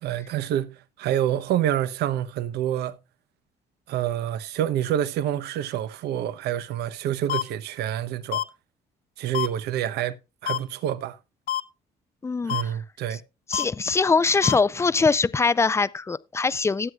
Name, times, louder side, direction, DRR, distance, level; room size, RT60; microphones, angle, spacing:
voice 1, 0.0-3.0 3.9-8.4 9.2-10.2 10.4-11.2 12.4-13.2, right 11 dB, 75° right, 0.9 m, -27 dB
sound 1, 7.3-7.4 8.3-8.4 9.3-9.5 10.5-10.6 11.5-11.6 12.5-12.6 13.5-13.6 14.4-14.5, left 11 dB, 60° left, 1.1 m, -26 dB
voice 2, 12.2-12.6 13.5-16.9, left 4 dB, 15° left, 0.5 m, -22 dB
18.5 x 7.9 x 2.4 m
cardioid pair, 110°, 17 cm